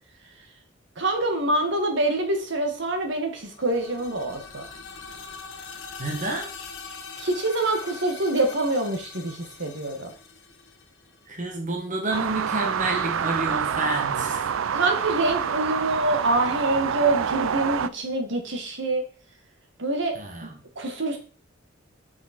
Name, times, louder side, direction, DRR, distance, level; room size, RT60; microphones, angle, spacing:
voice 1, 1.0-4.6 7.2-10.1 14.7-19.0 19.8-21.2, right 2 dB, 65° right, 4 dB, 1.7 m, -26 dB
sound 1, 3.4-11.3, left 5 dB, 70° left, 1.3 m, -42 dB
voice 2, 6.0-6.5 11.3-14.5 20.1-20.5, right 2 dB, 40° right, 2 dB, 1.5 m, -29 dB
sound 2, 12.1-17.9, right 7 dB, 85° right, 0.4 m, -27 dB
7.3 x 6.2 x 4.3 m, 0.39 s
head